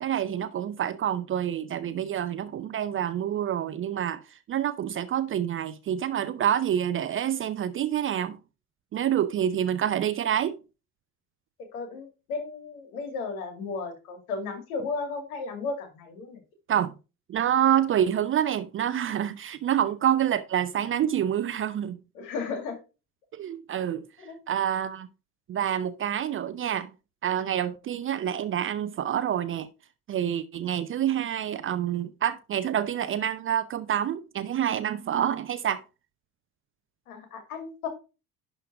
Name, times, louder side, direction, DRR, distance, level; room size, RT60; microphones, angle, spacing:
voice 1, 0.0-8.4 8.9-10.6 16.7-16.9 17.3-22.0 23.3-24.0 24.5-25.1 25.5-26.9 27.2-29.7 30.1-35.8, right 10 dB, 25° right, 0.6 m, -27 dB
voice 2, 11.7-16.4 22.2-22.8 24.2-24.4 37.1-37.9, left 4 dB, 65° left, 2.5 m, -34 dB
11.0 x 3.9 x 4.7 m
figure-of-eight pair, 60°, 46 cm